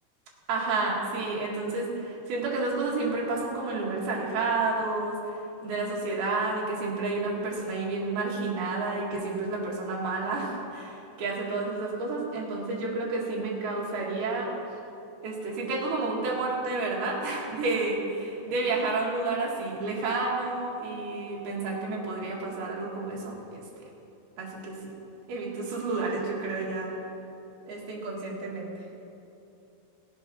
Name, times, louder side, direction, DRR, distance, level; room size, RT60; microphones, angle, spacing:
voice 1, 0.5-5.2 5.6-14.5 15.2-23.8 24.4-24.9 25.3-27.0 27.7-28.7, right 3 dB, 60° right, -3 dB, 3.7 m, -30 dB
16.5 x 8.0 x 6.1 m, 2.8 s
omnidirectional pair, 5.2 m